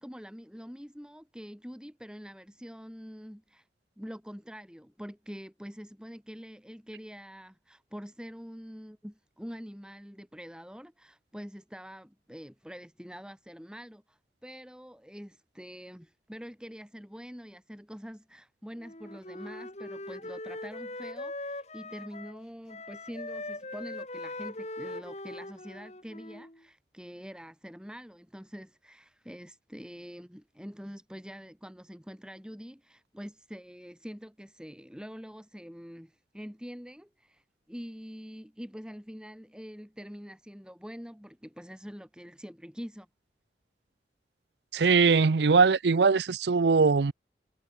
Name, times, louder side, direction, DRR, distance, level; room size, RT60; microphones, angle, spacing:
voice 1, 0.0-3.7 4.0-43.1, equal, 5° right, 4.8 m, -45 dB
Wind instrument woodwind instrument, 18.8-22.4 22.7-26.6, left 2 dB, 40° left, 5.5 m, -41 dB
voice 2, 44.7-47.1, right 4 dB, 75° right, 0.6 m, -21 dB
head